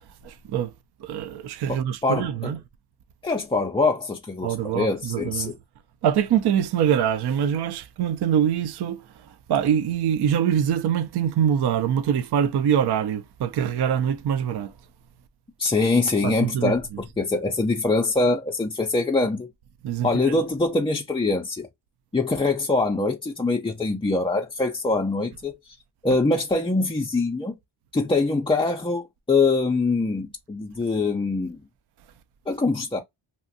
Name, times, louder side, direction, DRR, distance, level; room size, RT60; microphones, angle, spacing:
voice 1, 0.2-0.7 1.0-2.6 4.4-5.5 6.0-9.0 9.5-14.7 16.2-16.7 19.8-20.4, right 9 dB, 55° right, 0.5 m, -24 dB
voice 2, 1.7-2.5 3.2-5.6 15.6-19.5 20.0-21.7 22.1-25.8 26.0-27.5 27.9-31.6 32.5-33.0, left 3 dB, 15° left, 0.3 m, -24 dB
2.8 x 2.5 x 2.6 m
cardioid pair, 80°, 47 cm